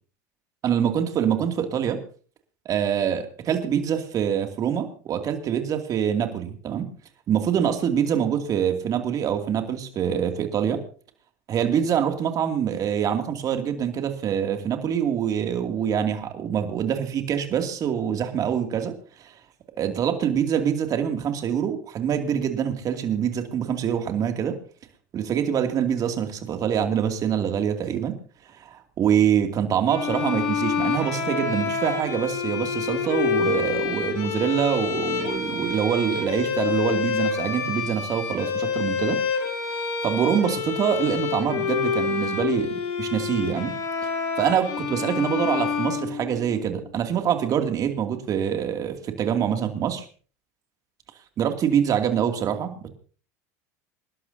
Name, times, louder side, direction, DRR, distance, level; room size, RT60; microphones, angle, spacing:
voice 1, 0.6-2.0 2.6-6.9 7.3-10.8 11.5-19.4 19.8-24.6 25.1-28.1 28.5-39.2 40.0-43.7 44.4-50.1 51.4-52.9, right 8 dB, 45° right, 5 dB, 2.6 m, -25 dB
sound 1, 29.9-46.7, left 6 dB, 60° left, 6.4 m, -27 dB
27.0 x 12.0 x 2.8 m, 0.41 s
hypercardioid pair, 95°, 9 cm